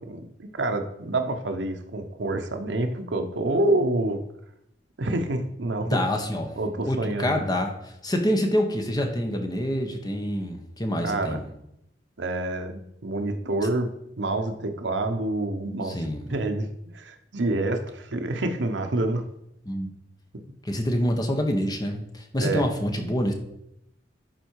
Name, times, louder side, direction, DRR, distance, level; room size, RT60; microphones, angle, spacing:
voice 1, 0.0-4.2 5.0-6.0 6.6-7.4 11.0-11.4 12.2-13.9 14.2-16.0 16.3-16.7 16.9-19.2 22.4-22.6, right 2 dB, 70° right, 6 dB, 0.9 m, -27 dB
voice 2, 5.8-6.5 6.9-11.5 15.8-16.3 19.7-19.9 20.6-23.3, equal, 20° left, 3 dB, 1.2 m, -26 dB
11.5 x 4.5 x 4.7 m, 0.80 s
head